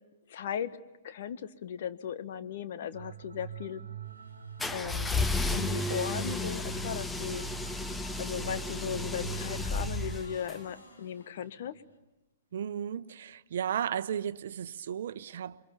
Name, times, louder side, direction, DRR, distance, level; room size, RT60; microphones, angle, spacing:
voice 1, 0.3-0.8 1.0-3.8 4.7-5.1 5.5-7.4 8.2-11.8, left 8 dB, 60° left, 1.4 m, -37 dB
sound 1, 2.9-10.4, right 8 dB, 80° right, 1.3 m, -43 dB
sound 2, 4.0-7.2 8.6-12.0, left 2 dB, 85° left, 4.9 m, -56 dB
sound 3, 4.6-10.6, left 3 dB, 10° left, 1.0 m, -33 dB
voice 2, 12.5-15.6, right 9 dB, 65° right, 0.9 m, -34 dB
28.0 x 23.5 x 8.8 m
hypercardioid pair, 120°, 0 cm